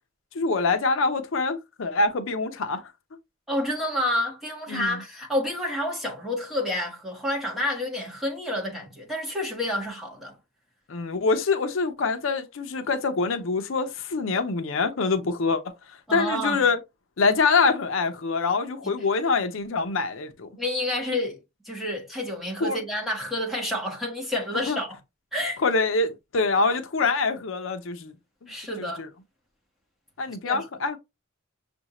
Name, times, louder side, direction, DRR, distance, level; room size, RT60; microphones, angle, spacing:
voice 1, 0.3-2.8 4.7-5.0 10.9-15.7 16.1-16.8 17.2-20.5 22.6-22.8 24.7-24.8 25.6-28.1 28.4-28.5 28.8-29.1 30.2-31.0, left 4 dB, 70° left, 0.6 m, -25 dB
voice 2, 3.5-10.4 16.1-16.6 20.6-21.4 21.6-25.0 25.3-25.6 28.5-29.0 30.4-30.6, left 1 dB, ahead, 1.4 m, -29 dB
6.3 x 2.6 x 2.9 m
head